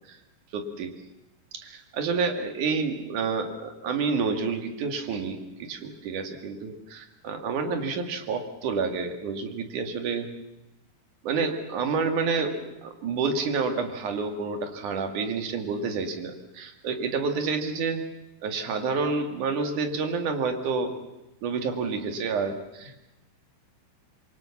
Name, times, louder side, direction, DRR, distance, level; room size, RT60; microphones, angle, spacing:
voice 1, 0.5-0.9 1.5-10.3 11.2-18.0 18.4-21.0 21.4-23.0, right 4 dB, 55° right, 6 dB, 3.4 m, -29 dB
27.0 x 23.0 x 7.2 m, 0.97 s
omnidirectional pair, 4.4 m